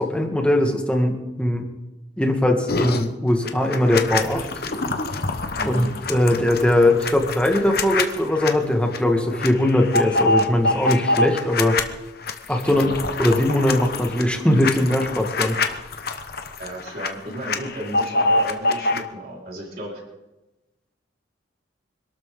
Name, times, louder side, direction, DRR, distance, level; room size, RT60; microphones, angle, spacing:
voice 1, 0.0-1.6 2.2-4.5 5.6-11.8 12.5-12.9 13.2-15.6, left 1 dB, 5° left, 2 dB, 1.8 m, -20 dB
sound 1, 2.7-3.0 3.5-8.5 8.9-9.0 9.3-11.8 12.2-17.1 17.3-19.0, left 2 dB, 50° left, 1.1 m, -25 dB
voice 2, 5.6-5.9 12.6-13.0 16.6-20.0, right 1 dB, 50° right, -3 dB, 4.7 m, -34 dB
26.0 x 12.5 x 3.9 m, 1.0 s
head